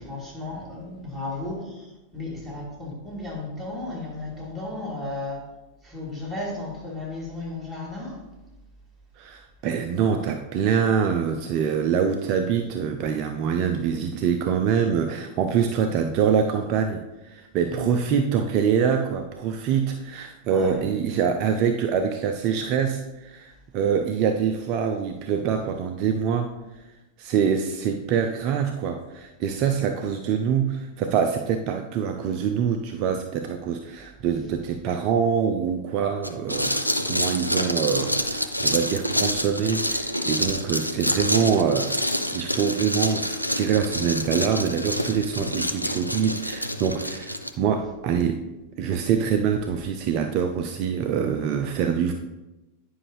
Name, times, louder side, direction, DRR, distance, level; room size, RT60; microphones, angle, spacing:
voice 1, 0.0-5.4 5.8-8.2 17.7-18.0 20.5-20.8, left 2 dB, ahead, 3.0 m, -34 dB
voice 2, 9.2-26.5 27.2-48.4 48.8-52.1, right 7 dB, 40° right, 0.5 m, -25 dB
sound 1, 36.2-47.5, equal, 90° left, 0.5 m, -27 dB
9.8 x 5.4 x 3.3 m
figure-of-eight pair, 90°, 0 cm